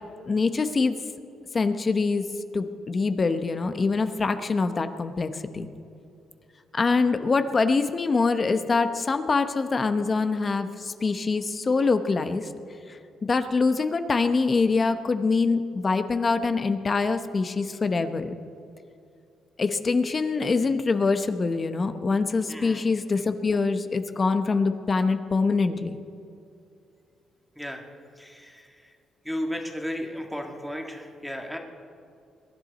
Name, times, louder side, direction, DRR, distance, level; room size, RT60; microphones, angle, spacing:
voice 1, 0.3-0.9 1.5-2.2 2.5-5.7 6.7-12.5 13.2-18.3 19.6-26.0, left 4 dB, 35° left, 9 dB, 0.9 m, -24 dB
voice 2, 22.5-22.8 27.6-27.8 28.2-28.7 29.2-31.6, equal, ahead, 2 dB, 1.9 m, -34 dB
23.0 x 11.0 x 4.1 m, 2.6 s
cardioid pair, 90°, 0 cm